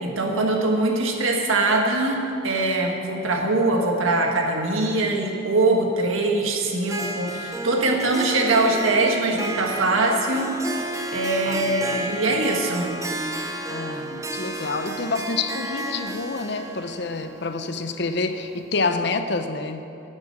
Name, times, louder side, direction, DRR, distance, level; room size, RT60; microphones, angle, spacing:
voice 1, 0.0-10.8 11.1-13.0, right 2 dB, 80° right, 2 dB, 1.5 m, -22 dB
Harp, 6.8-18.7, right 1 dB, 15° right, 0.6 m, -32 dB
voice 2, 11.4-12.4 13.7-19.8, left 3 dB, 55° left, 9 dB, 0.7 m, -28 dB
10.0 x 8.0 x 8.4 m, 2.7 s
head